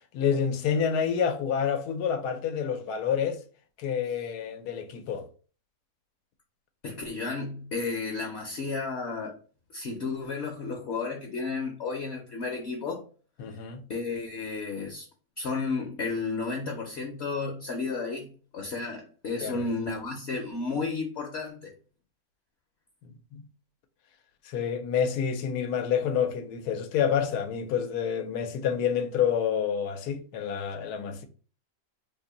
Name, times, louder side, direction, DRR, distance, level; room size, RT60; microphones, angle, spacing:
voice 1, 0.1-3.4 3.8-5.3 13.4-13.8 19.4-19.7 23.0-23.4 24.4-31.2, left 7 dB, 85° left, 1.1 m, -28 dB
voice 2, 6.8-9.3 9.7-13.0 13.9-15.1 15.4-18.3 18.5-21.7, left 4 dB, 55° left, 0.8 m, -32 dB
2.8 x 2.6 x 3.7 m
omnidirectional pair, 1.6 m